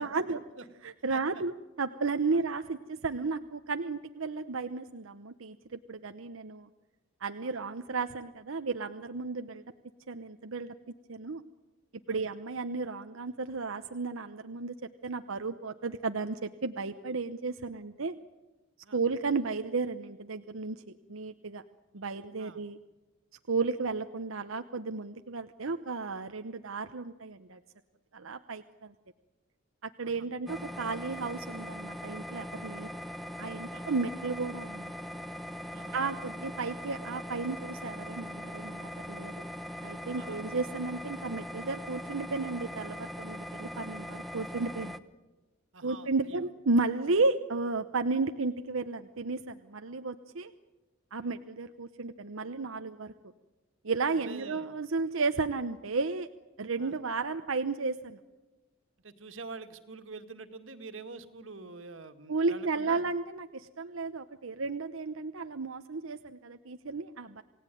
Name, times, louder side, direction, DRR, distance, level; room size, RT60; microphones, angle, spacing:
voice 1, 0.0-0.4 0.8-6.7 7.2-9.6 10.1-10.7 11.1-11.4 12.1-14.7 15.0-18.1 18.9-20.8 21.1-21.6 21.9-22.8 23.5-27.6 28.1-28.9 29.8-32.9 33.4-34.9 35.9-39.3 39.8-44.9 45.8-50.5 51.1-53.1 53.8-56.3 56.6-58.2 62.3-67.4, right 3 dB, 85° right, 8 dB, 0.9 m, -33 dB
voice 2, 1.1-1.4 2.3-2.4 7.4-7.6 12.1-12.3 18.8-19.0 22.4-22.6 30.0-30.3 33.7-33.9 35.7-36.0 40.2-40.4 45.7-46.5 51.2-51.3 54.1-54.7 56.8-57.0 59.0-63.0, right 3 dB, 70° right, 8 dB, 2.0 m, -46 dB
sound 1, 30.5-45.0, equal, ahead, 0.9 m, -41 dB
28.5 x 18.0 x 9.3 m, 1.1 s
head